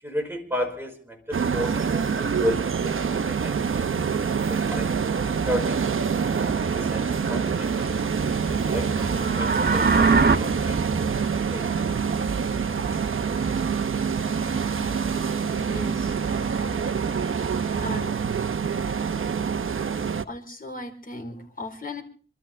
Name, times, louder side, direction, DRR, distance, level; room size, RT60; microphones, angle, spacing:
voice 1, 0.0-5.1 5.4-5.8 6.4-10.8 11.5-11.7, equal, 10° right, 2 dB, 5.3 m, -33 dB
sound 1, 1.3-20.2, right 6 dB, 70° right, 1.0 m, -26 dB
sound 2, 6.2-18.0, equal, 30° right, 2.8 m, -39 dB
sound 3, 9.0-10.4, right 4 dB, 50° right, 1.3 m, -21 dB
voice 2, 15.7-16.2 17.8-18.2 20.2-22.0, left 2 dB, 40° left, 3 dB, 4.7 m, -37 dB
28.0 x 13.0 x 3.5 m, 0.40 s
wide cardioid pair, 85°, 21 cm